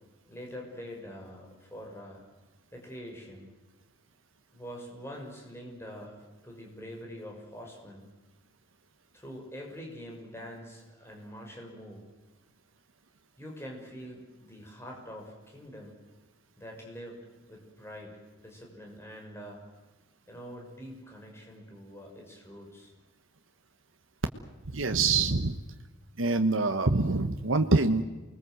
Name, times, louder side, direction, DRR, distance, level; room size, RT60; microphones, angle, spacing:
voice 1, 0.3-2.2 2.7-3.5 4.5-8.1 9.1-12.1 13.4-16.0 16.6-19.6 20.3-22.9, equal, 15° left, 0 dB, 6.4 m, -45 dB
voice 2, 24.7-25.6 26.2-28.0, right 3 dB, 85° right, 6 dB, 1.3 m, -25 dB
28.5 x 21.5 x 7.8 m, 1.2 s
head